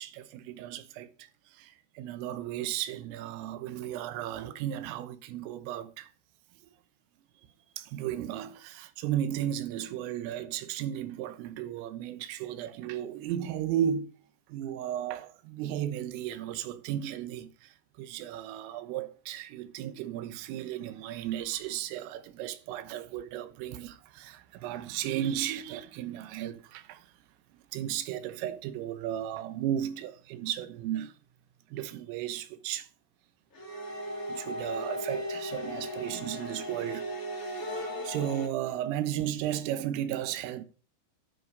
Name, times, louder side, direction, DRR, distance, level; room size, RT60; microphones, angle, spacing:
voice 1, 0.0-6.1 7.8-14.1 14.5-27.1 27.7-31.1 31.7-32.9 34.3-37.1 37.5-40.6, right 11 dB, 85° right, 3.6 m, -35 dB
sound 1, 33.5-38.5, equal, 40° left, 1.2 m, -37 dB
9.9 x 6.0 x 5.3 m
omnidirectional pair, 5.8 m